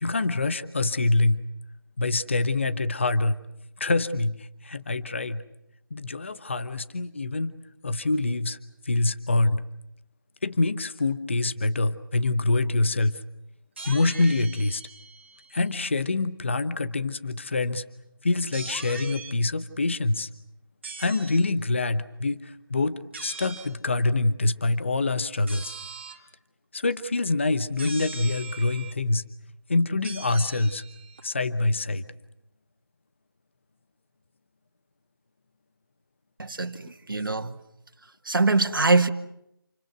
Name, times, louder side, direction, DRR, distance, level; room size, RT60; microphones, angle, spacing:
voice 1, 0.0-1.4 2.0-3.4 3.8-5.4 5.9-7.5 7.8-8.6 8.8-9.6 10.4-13.2 13.8-14.8 15.5-17.8 18.2-20.3 21.0-25.7 26.7-29.2 29.7-30.8 31.2-32.0, left 2 dB, 30° left, 14 dB, 0.9 m, -25 dB
sound 1, 13.8-15.7 18.5-19.4 20.8-21.5 23.1-23.7 25.5-26.3 27.8-28.9 30.0-31.2, right 4 dB, 30° right, 2.1 m, -41 dB
voice 2, 36.4-37.6 38.3-39.1, right 3 dB, 65° right, 6 dB, 2.0 m, -23 dB
28.5 x 21.5 x 8.1 m, 0.81 s
figure-of-eight pair, 175°, 12 cm